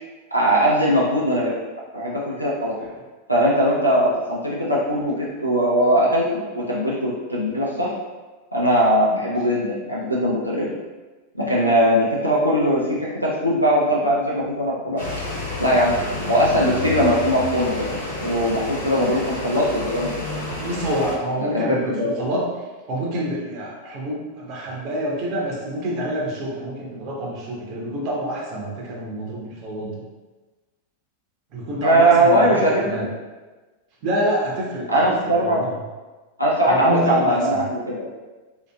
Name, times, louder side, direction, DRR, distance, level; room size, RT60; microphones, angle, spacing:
voice 1, 0.3-1.5 1.9-2.7 3.3-7.9 8.5-10.7 11.3-15.0 15.6-15.9 16.3-17.9 18.2-20.3 21.4-22.2 31.8-33.1 34.9-35.6 36.4-38.1, equal, 90° right, -6 dB, 0.4 m, -20 dB
sound 1, 15.0-21.1, left 2 dB, 70° left, 0.8 m, -30 dB
voice 2, 20.6-22.4 22.9-30.0 31.5-33.1 34.0-35.0 35.3-35.7 36.7-37.6, right 1 dB, 40° right, -3 dB, 0.7 m, -27 dB
2.8 x 2.4 x 2.2 m, 1.2 s
figure-of-eight pair, 90°, 0 cm